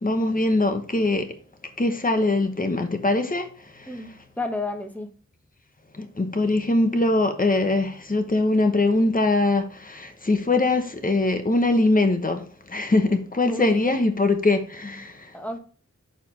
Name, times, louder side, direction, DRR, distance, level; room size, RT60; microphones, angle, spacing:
voice 1, 0.0-1.3 1.8-3.5 3.7-4.1 6.0-15.3, left 2 dB, 30° left, 1.1 m, -22 dB
voice 2, 4.4-5.1 13.5-13.8 15.3-15.6, left 2 dB, 5° left, 1.2 m, -30 dB
6.8 x 4.5 x 5.0 m
wide cardioid pair, 70°, 29 cm